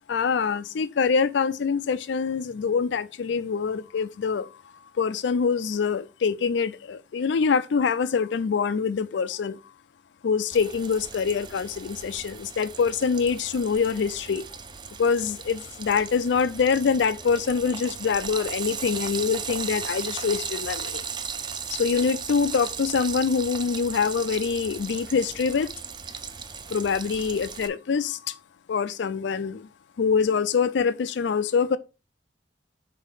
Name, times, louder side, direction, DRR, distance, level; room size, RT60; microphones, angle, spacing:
voice 1, 0.1-9.6 10.2-14.4 15.0-21.0 21.7-25.7 26.7-28.4 28.7-29.7 30.0-31.8, left 5 dB, 80° left, 0.4 m, -25 dB
Frying (food), 10.5-27.7, right 6 dB, 25° right, 0.5 m, -37 dB
5.7 x 4.0 x 4.9 m
head